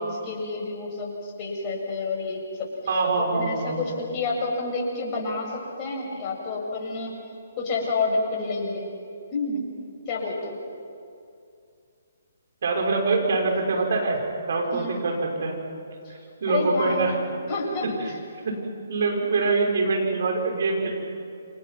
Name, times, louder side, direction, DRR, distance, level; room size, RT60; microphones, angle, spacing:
voice 1, 0.0-2.7 3.2-7.2 7.6-8.9 9.3-9.6 10.1-10.6 14.7-15.0 16.5-17.0 17.5-18.2, left 3 dB, 30° left, -2 dB, 7.3 m, -29 dB
voice 2, 2.9-3.8 12.6-14.2 14.5-15.6 16.4-17.2 17.8-17.9 18.4-18.5 18.9-20.9, right 3 dB, 60° right, 1 dB, 6.4 m, -24 dB
29.5 x 26.5 x 6.1 m, 2.4 s
figure-of-eight pair, 135°, 0 cm